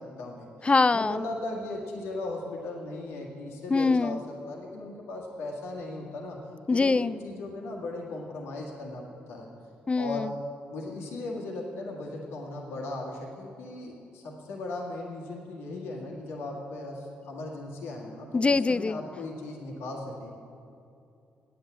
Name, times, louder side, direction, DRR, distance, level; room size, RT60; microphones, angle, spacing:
voice 1, 0.0-6.4 6.7-9.5 10.0-10.3 10.7-20.3, left 2 dB, 80° left, -2 dB, 1.8 m, -37 dB
voice 2, 0.6-1.3 3.7-4.2 6.7-7.2 9.9-10.3 18.3-19.0, left 3 dB, 25° left, 19 dB, 0.3 m, -23 dB
9.5 x 8.4 x 7.7 m, 2.7 s
hypercardioid pair, 50°, 4 cm